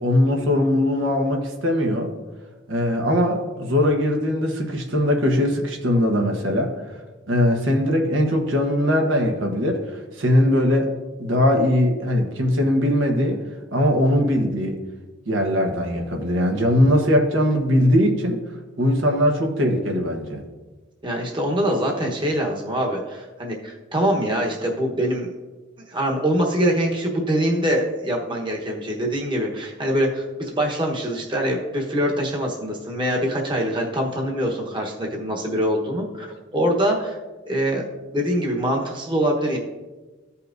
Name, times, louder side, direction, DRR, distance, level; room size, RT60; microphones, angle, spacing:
voice 1, 0.0-2.1 2.7-6.8 7.3-9.8 10.2-10.9 11.2-13.4 13.7-14.8 15.3-18.4 18.8-20.4, left 1 dB, 85° right, 3 dB, 1.2 m, -20 dB
voice 2, 21.0-25.3 25.8-36.3 36.5-37.2 37.5-37.8 38.1-39.6, equal, 25° right, 0 dB, 1.1 m, -24 dB
14.5 x 5.6 x 2.6 m, 1.2 s
head